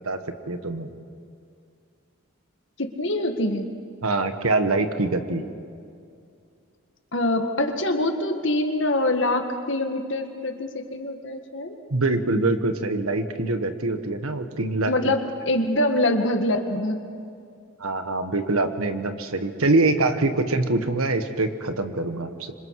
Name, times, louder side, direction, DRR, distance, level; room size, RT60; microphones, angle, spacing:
voice 1, 0.5-0.9 4.0-5.4 11.9-15.1 17.8-22.5, right 2 dB, 90° right, 8 dB, 1.5 m, -24 dB
voice 2, 2.8-3.7 7.1-11.8 14.9-17.0, left 1 dB, 60° left, 5 dB, 1.8 m, -24 dB
26.5 x 26.0 x 4.9 m, 2.4 s
head